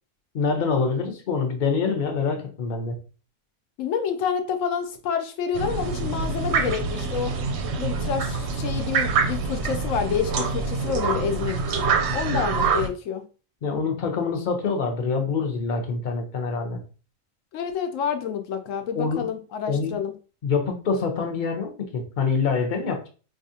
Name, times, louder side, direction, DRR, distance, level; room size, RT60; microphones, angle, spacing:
voice 1, 0.3-3.0 13.6-16.8 18.9-19.3 19.7-19.9 20.4-23.1, left 5 dB, 45° left, 0.7 m, -25 dB
voice 2, 3.8-7.3 7.8-11.8 12.1-13.2 17.5-20.1, left 7 dB, 75° left, 1.0 m, -28 dB
sound 1, 5.5-12.9, right 4 dB, 65° right, 0.7 m, -26 dB
4.2 x 2.4 x 2.7 m
omnidirectional pair, 1.4 m